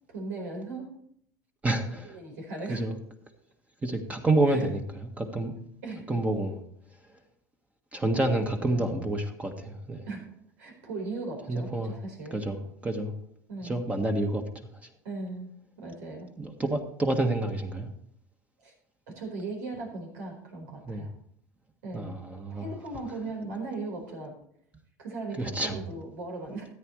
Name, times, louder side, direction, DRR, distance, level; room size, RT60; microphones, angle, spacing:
voice 1, 0.1-0.9 1.9-2.9 4.5-4.7 5.8-6.2 8.6-9.0 10.1-10.2 10.6-12.4 13.5-13.8 15.0-15.5 15.8-16.3 18.6-18.7 19.1-21.1 21.8-22.2 22.5-24.3 25.0-26.7, right 3 dB, 85° right, 2 dB, 4.5 m, -38 dB
voice 2, 1.6-2.2 2.7-2.9 3.8-5.5 6.1-6.6 7.9-10.0 11.5-11.9 12.3-13.1 13.6-14.7 16.4-17.9 20.9-21.0 21.9-22.6 25.4-25.8, right 2 dB, 15° right, 4 dB, 1.6 m, -28 dB
13.5 x 9.4 x 3.2 m, 0.69 s
supercardioid pair, 110°, 9 cm